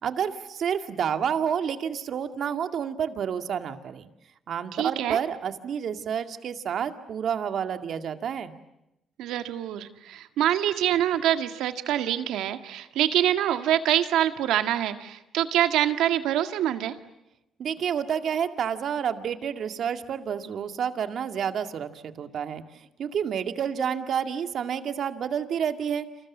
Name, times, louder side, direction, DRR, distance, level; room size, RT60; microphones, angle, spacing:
voice 1, 0.0-4.1 4.5-8.6 17.6-26.1, right 8 dB, 65° right, 8 dB, 2.1 m, -29 dB
voice 2, 4.7-5.2 9.2-16.9, right 11 dB, 90° right, 8 dB, 1.9 m, -25 dB
29.5 x 27.5 x 7.4 m, 0.87 s
cardioid pair, 90°, 0 cm